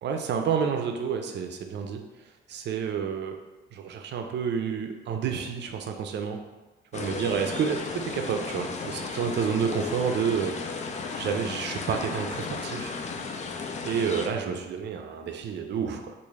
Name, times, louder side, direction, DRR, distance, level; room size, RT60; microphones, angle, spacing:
voice 1, 0.0-2.0 2.5-3.4 3.7-6.4 6.9-10.5 11.2-12.9 13.8-16.1, right 7 dB, 60° right, 5 dB, 0.5 m, -29 dB
sound 1, 6.9-14.3, left 4 dB, 35° left, 0.4 m, -34 dB
3.2 x 2.5 x 3.6 m, 1.2 s
cardioid pair, 90°, 20 cm